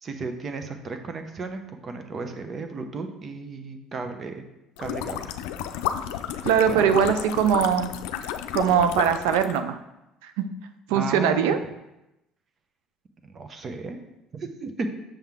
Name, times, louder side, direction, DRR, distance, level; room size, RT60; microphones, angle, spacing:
voice 1, 0.0-4.4 4.8-5.2 6.7-6.9 10.9-11.5 13.2-14.0 14.3-14.9, right 3 dB, 40° right, 7 dB, 0.9 m, -34 dB
sound 1, 4.8-9.6, left 10 dB, 85° left, 0.4 m, -32 dB
voice 2, 6.4-7.9 8.5-9.8 10.2-10.3 10.9-11.6, right 8 dB, 90° right, 9 dB, 0.5 m, -21 dB
7.0 x 5.7 x 3.6 m, 0.92 s
supercardioid pair, 95°, 0 cm